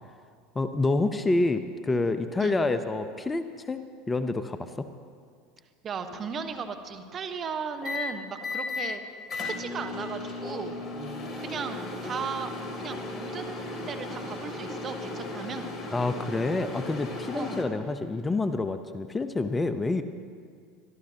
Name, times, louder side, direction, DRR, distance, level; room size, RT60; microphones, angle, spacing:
voice 1, 0.5-3.8 4.1-4.9 15.9-20.0, left 2 dB, 20° left, 10 dB, 0.7 m, -28 dB
voice 2, 5.8-9.0 9.4-10.8 11.4-15.7 17.3-17.6, right 6 dB, 35° right, 8 dB, 1.2 m, -36 dB
sound 1, 6.1-6.4 7.8-8.0 8.4-8.8 9.3-17.6, left 2 dB, 35° left, 2.7 m, -36 dB
23.5 x 13.0 x 2.9 m, 2.1 s
hypercardioid pair, 80°, 0 cm